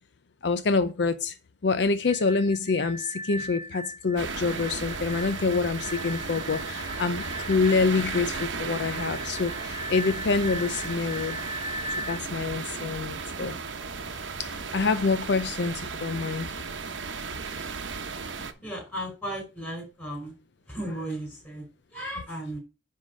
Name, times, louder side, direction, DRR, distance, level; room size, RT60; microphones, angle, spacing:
voice 1, 0.4-1.4 1.6-11.4 12.1-13.6 14.4-16.6, left 4 dB, 65° left, 0.5 m, -26 dB
sound 1, 2.0-12.2, equal, 20° right, 0.7 m, -39 dB
sound 2, 4.2-18.5, right 4 dB, 85° right, 0.9 m, -35 dB
voice 2, 18.6-20.3 20.7-22.6, right 1 dB, 10° left, 4.8 m, -35 dB
9.8 x 3.8 x 5.3 m
head